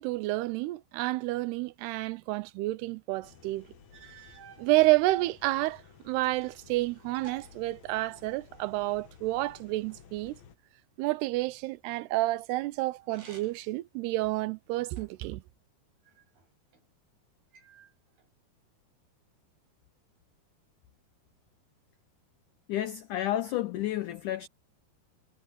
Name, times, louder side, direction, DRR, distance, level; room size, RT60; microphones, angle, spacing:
voice 1, 0.0-3.7 4.6-10.4 11.0-15.4, right 19 dB, 85° right, 2.7 m, -29 dB
sound 1, 3.2-10.6, left 7 dB, 55° left, 2.3 m, -56 dB
sound 2, 3.3-3.4 3.9-4.7 5.4-6.7 6.9-8.5 13.0-13.8 14.3-15.3 16.0-16.8 17.5-18.3, right 6 dB, 70° right, 9.5 m, -54 dB
voice 2, 22.7-24.5, left 13 dB, 80° left, 1.8 m, -31 dB
omnidirectional pair, 4.7 m